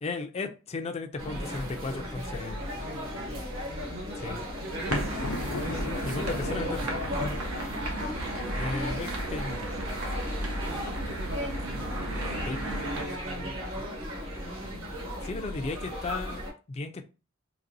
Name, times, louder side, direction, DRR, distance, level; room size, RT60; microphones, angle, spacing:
voice 1, 0.0-2.7 4.2-4.4 6.0-7.1 8.6-9.7 12.5-12.6 15.2-17.1, left 3 dB, 30° left, 0.4 m, -35 dB
sound 1, 1.2-16.5, equal, 70° right, 1.5 m, -35 dB
voice 2, 2.7-4.3 4.6-6.3 10.6-14.0, right 1 dB, 50° right, 0.7 m, -43 dB
Thunder, 4.7-8.8, left 2 dB, 85° left, 0.6 m, -37 dB
sound 2, 4.8-13.0, right 2 dB, 85° right, 0.9 m, -35 dB
4.0 x 2.9 x 2.6 m
head